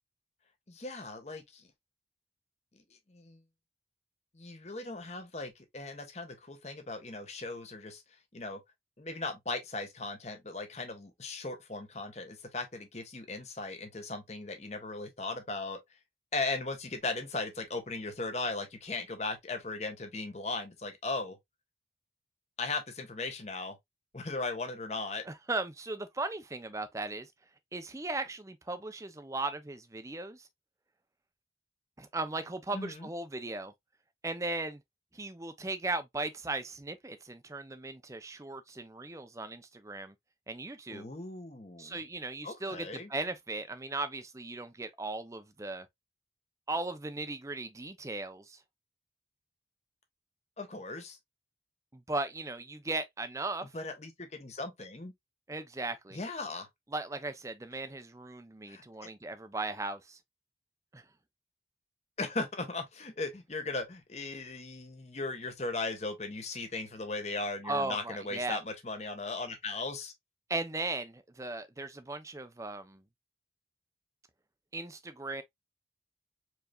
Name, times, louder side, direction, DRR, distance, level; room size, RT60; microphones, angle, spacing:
voice 1, 0.7-1.7 3.1-3.4 4.3-8.0 8.3-8.6 9.0-15.8 16.3-21.4 22.6-23.8 24.1-25.2 32.7-33.1 40.9-42.0 42.4-43.1 50.6-51.2 53.7-55.1 56.1-56.7 58.7-59.1 62.2-70.1, left 3 dB, 40° left, 1.0 m, -37 dB
voice 2, 25.2-27.3 27.7-30.4 32.0-33.7 34.2-34.8 35.1-40.1 40.5-41.1 41.8-45.9 46.7-48.6 51.9-53.7 55.5-56.2 56.9-60.2 60.9-61.0 67.6-68.6 70.5-73.0 74.7-75.4, right 2 dB, 15° right, 0.6 m, -37 dB
4.7 x 3.3 x 2.4 m
head